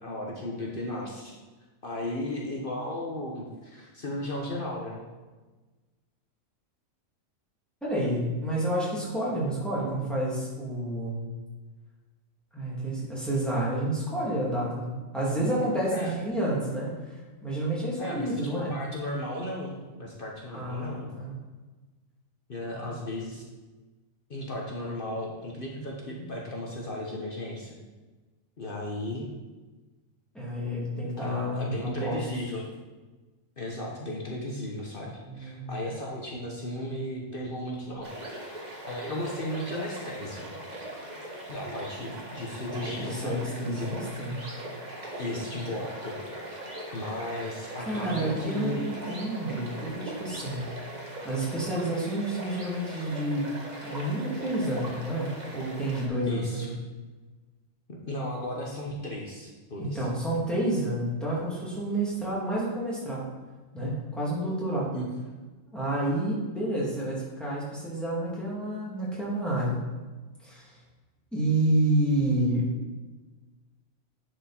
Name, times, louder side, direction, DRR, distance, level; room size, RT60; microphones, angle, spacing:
voice 1, 0.0-1.4 1.8-5.0 15.9-16.1 18.0-21.1 22.5-23.4 24.3-27.7 28.6-29.3 31.2-32.7 33.6-38.1 38.9-40.5 41.5-44.0 45.2-46.2 46.5-46.6 46.9-48.9 56.3-56.7 57.9-60.1 64.9-65.3, left 1 dB, 45° left, -2 dB, 1.2 m, -35 dB
voice 2, 7.8-11.3 12.5-18.8 20.5-21.3 22.7-22.9 30.3-32.2 35.2-35.8 42.8-44.4 47.8-50.6 51.2-53.5 53.8-56.7 59.8-63.2 63.7-64.9 65.7-69.8 70.4-70.7 71.3-72.6, right 1 dB, ahead, -7 dB, 2.8 m, -29 dB
sound 1, 38.0-56.1, right 1 dB, 35° right, 1.5 m, -40 dB
10.5 x 5.1 x 4.4 m, 1.3 s
omnidirectional pair, 1.4 m